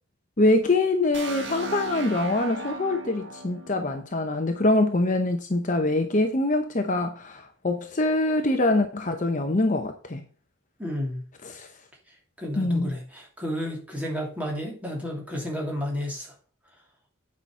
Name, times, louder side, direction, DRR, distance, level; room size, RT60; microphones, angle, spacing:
voice 1, 0.4-10.2 11.4-11.7 12.6-12.9, left 2 dB, 35° left, 0.8 m, -24 dB
sound 1, 1.1-5.0, right 2 dB, 60° right, 1.7 m, -37 dB
voice 2, 10.8-11.2 12.4-16.3, equal, 5° right, 2.8 m, -31 dB
8.8 x 5.8 x 4.5 m
head